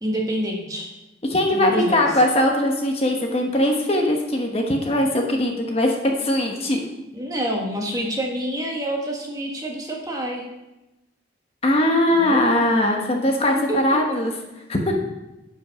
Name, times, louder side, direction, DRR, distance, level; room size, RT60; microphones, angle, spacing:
voice 1, 0.0-0.9 1.5-2.1 7.1-10.4 12.2-12.4 13.7-14.2, right 1 dB, 20° right, 0 dB, 1.4 m, -27 dB
voice 2, 1.2-6.8 11.6-14.3 14.7-14.8, left 1 dB, 30° left, 2 dB, 1.2 m, -20 dB
11.0 x 5.5 x 5.7 m, 0.99 s
head